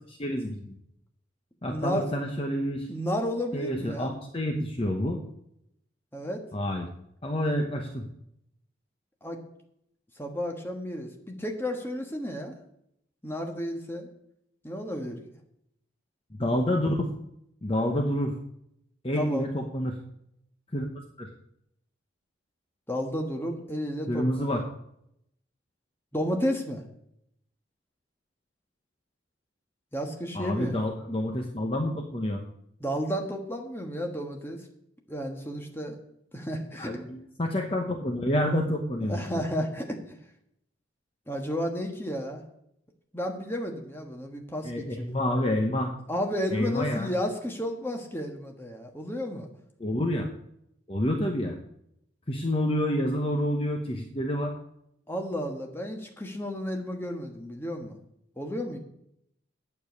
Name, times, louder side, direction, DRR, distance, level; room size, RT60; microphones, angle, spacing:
voice 1, 0.1-0.7 1.6-2.9 3.5-5.2 6.5-6.9 7.2-8.1 16.3-17.1 17.6-18.3 19.0-20.0 20.7-20.8 21.2-21.3 24.1-24.6 30.3-32.4 36.8-39.2 44.6-45.9 46.5-47.1 49.8-50.3 50.9-51.6 52.3-54.6, left 1 dB, 30° left, 2 dB, 0.9 m, -28 dB
voice 2, 1.7-2.1 2.9-4.1 6.1-6.4 9.2-9.4 10.2-12.5 13.2-14.1 14.6-15.2 19.1-19.4 22.9-24.6 26.1-26.8 29.9-30.7 32.8-34.6 35.1-36.0 36.3-37.0 39.0-40.0 41.3-42.4 43.1-45.1 46.1-49.5 55.1-58.0 58.4-58.8, equal, 10° left, 2 dB, 1.3 m, -32 dB
8.8 x 7.0 x 8.4 m, 0.77 s
head